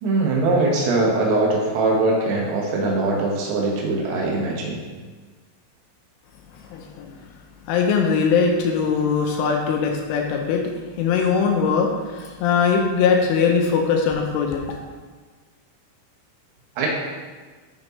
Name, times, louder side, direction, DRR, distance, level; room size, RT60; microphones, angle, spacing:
voice 1, 0.0-4.8 16.8-16.9, right 2 dB, 85° right, -2 dB, 4.2 m, -21 dB
voice 2, 6.7-7.1 7.7-10.6 11.0-14.6, left 5 dB, 85° left, 1 dB, 3.1 m, -21 dB
14.0 x 5.3 x 3.2 m, 1.4 s
omnidirectional pair, 5.8 m